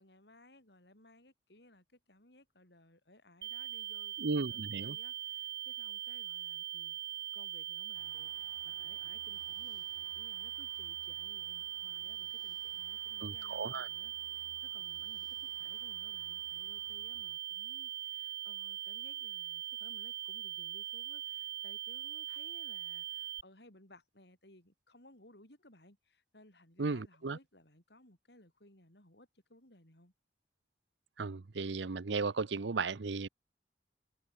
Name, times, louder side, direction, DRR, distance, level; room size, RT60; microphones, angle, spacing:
voice 1, 0.0-4.2 4.5-7.0 7.3-30.1, left 1 dB, 70° left, 7.2 m, -61 dB
sound 1, 3.4-23.4, right 12 dB, 55° right, 1.4 m, -41 dB
voice 2, 4.2-5.0 13.2-13.9 26.8-27.4 31.2-33.3, right 4 dB, 80° right, 0.7 m, -35 dB
sound 2, 7.9-17.4, left 2 dB, 25° left, 6.7 m, -63 dB
head